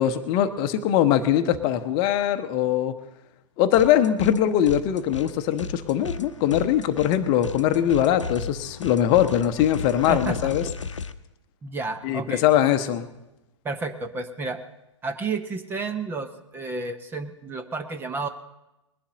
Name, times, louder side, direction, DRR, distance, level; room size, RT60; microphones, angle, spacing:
voice 1, 0.0-2.9 3.6-10.6 12.0-13.1, left 10 dB, 30° left, 9 dB, 0.9 m, -22 dB
sound 1, 3.7-4.4 4.6-11.1, left 4 dB, 75° left, 0.8 m, -35 dB
voice 2, 11.6-12.4 13.6-14.6 15.0-18.3, right 3 dB, 15° right, 8 dB, 0.7 m, -31 dB
21.0 x 11.0 x 3.9 m, 0.93 s
figure-of-eight pair, 110°, 16 cm